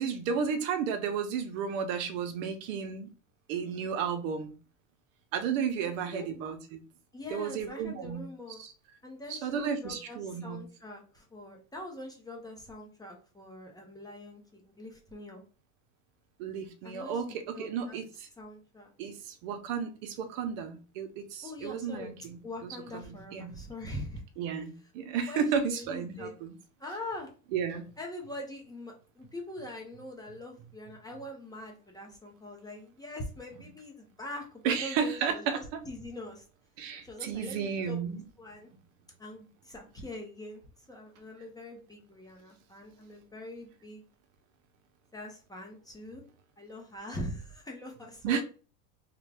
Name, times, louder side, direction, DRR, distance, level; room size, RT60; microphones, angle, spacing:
voice 1, 0.0-3.1 3.5-4.5 5.3-6.8 7.3-8.3 8.6-8.7 9.3-10.6 16.4-18.3 19.0-22.4 22.9-23.6 24.4-26.6 27.5-27.8 34.6-35.8 36.8-38.2 48.2-48.4, right 7 dB, 65° right, 0.8 m, -33 dB
voice 2, 5.8-6.3 7.1-8.6 9.0-15.4 16.8-18.1 18.4-18.9 21.4-22.1 22.4-24.2 25.3-26.3 26.8-27.3 28.0-36.4 37.0-38.0 38.4-38.7 39.2-44.0 45.1-46.2 46.6-48.4, left 1 dB, 10° left, 0.6 m, -43 dB
3.7 x 2.2 x 3.3 m
supercardioid pair, 140°, 44 cm